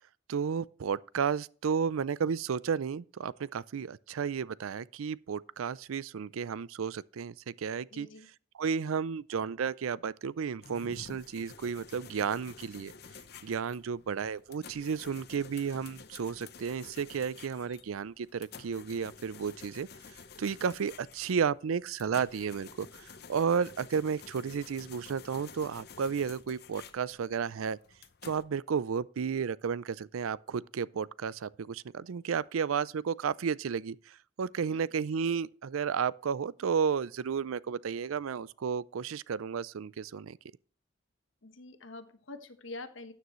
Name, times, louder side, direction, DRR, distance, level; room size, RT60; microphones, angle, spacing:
voice 1, 0.3-8.1 8.6-12.9 13.4-19.9 20.4-27.8 28.2-40.4, right 6 dB, 90° right, 0.4 m, -33 dB
voice 2, 7.9-8.3 34.7-34.8 41.4-43.1, left 2 dB, 70° left, 1.3 m, -46 dB
sound 1, 10.6-28.4, left 5 dB, 50° left, 0.8 m, -51 dB
13.0 x 9.5 x 3.1 m
head